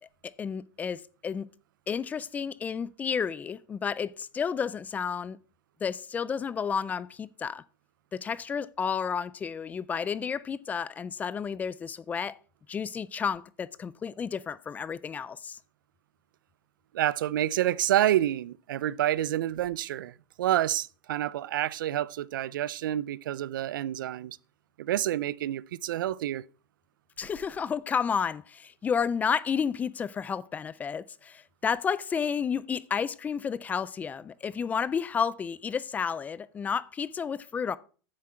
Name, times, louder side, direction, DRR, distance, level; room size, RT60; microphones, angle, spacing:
voice 1, 0.2-1.5 1.9-5.4 5.8-7.6 8.1-12.4 12.7-15.6 27.2-37.8, left 6 dB, 15° left, 0.3 m, -31 dB
voice 2, 16.9-24.4 24.8-26.4, right 12 dB, 85° right, 0.4 m, -28 dB
9.7 x 7.5 x 4.4 m
supercardioid pair, 140°, 11 cm